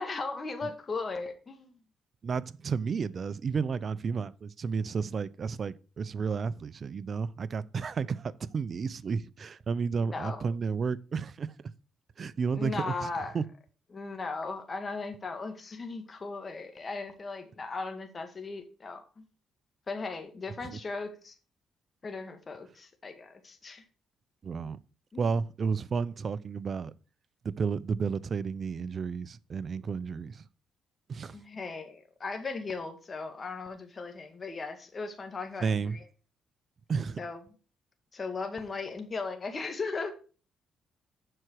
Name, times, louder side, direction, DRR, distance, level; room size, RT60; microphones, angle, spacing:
voice 1, 0.0-1.8 10.0-10.5 12.5-13.4 13.9-19.2 19.9-21.3 22.0-23.8 25.1-25.2 31.3-36.0 37.2-37.4 38.1-40.1, left 4 dB, 35° left, 1.9 m, -37 dB
voice 2, 2.2-11.5 12.2-13.1 13.3-13.4 24.4-24.8 25.2-26.9 27.4-30.5 31.1-31.4 35.6-36.0 36.9-37.2, right 5 dB, 45° right, 0.5 m, -32 dB
7.8 x 5.9 x 6.2 m
cardioid pair, 90°, 0 cm